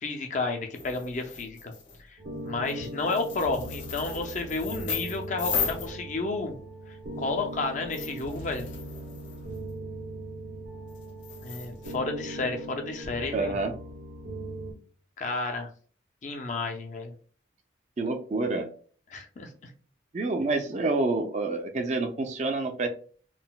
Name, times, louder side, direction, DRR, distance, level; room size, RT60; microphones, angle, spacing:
voice 1, 0.0-1.7 2.1-6.6 7.2-8.7 11.4-13.6 15.2-15.7 16.2-17.1 19.1-19.7, left 3 dB, 40° left, 4 dB, 0.4 m, -31 dB
sound 1, 0.7-2.0 2.7-6.5 7.1-9.7 10.9-11.9, left 6 dB, 90° left, 1.1 m, -37 dB
sound 2, 2.2-14.7, right 1 dB, 75° right, 0.8 m, -40 dB
voice 2, 13.3-13.7 18.0-18.7 20.1-22.9, right 3 dB, 40° right, 5 dB, 0.4 m, -28 dB
3.8 x 2.0 x 2.2 m, 0.43 s
head